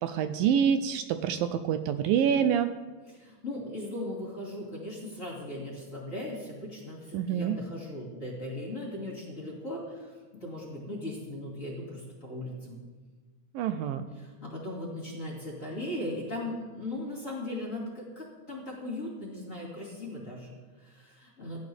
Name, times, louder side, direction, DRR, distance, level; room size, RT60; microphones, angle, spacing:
voice 1, 0.0-2.7 7.1-7.6 13.5-14.1, right 8 dB, 80° right, 10 dB, 2.2 m, -26 dB
voice 2, 3.1-12.8 14.2-21.6, left 1 dB, 25° left, -3 dB, 2.1 m, -38 dB
16.5 x 12.0 x 3.5 m, 1.3 s
omnidirectional pair, 4.2 m